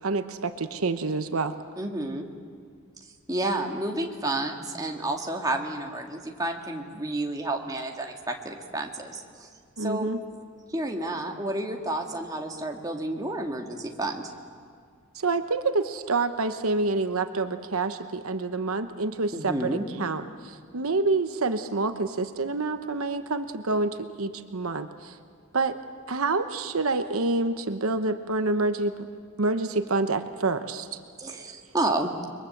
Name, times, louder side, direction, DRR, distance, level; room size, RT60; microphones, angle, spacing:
voice 1, 0.0-1.5 9.8-10.2 15.1-25.2 25.5-25.8 26.1-29.1 29.4-31.0, right 3 dB, 70° right, 9 dB, 1.0 m, -27 dB
voice 2, 1.8-2.3 3.3-9.5 9.8-10.1 10.7-14.3 19.3-19.9 31.2-32.1, right 2 dB, 15° right, 2 dB, 2.0 m, -30 dB
30.0 x 22.5 x 8.0 m, 2.1 s
head